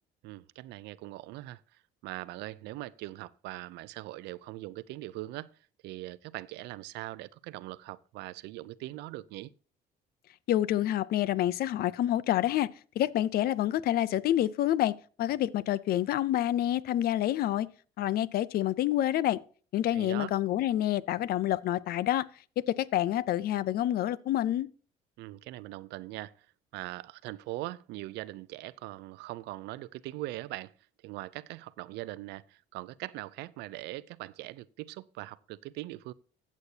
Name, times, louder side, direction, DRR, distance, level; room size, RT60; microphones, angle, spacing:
voice 1, 0.2-1.6 2.0-5.5 5.8-9.5 19.9-20.3 25.2-26.5 26.7-30.7 31.0-36.1, right 17 dB, 85° right, 0.5 m, -41 dB
voice 2, 10.5-12.7 13.0-17.7 18.0-19.4 19.7-22.3 22.6-24.7, left 13 dB, 65° left, 0.6 m, -28 dB
14.5 x 8.3 x 2.8 m
cardioid pair, 110°, 17 cm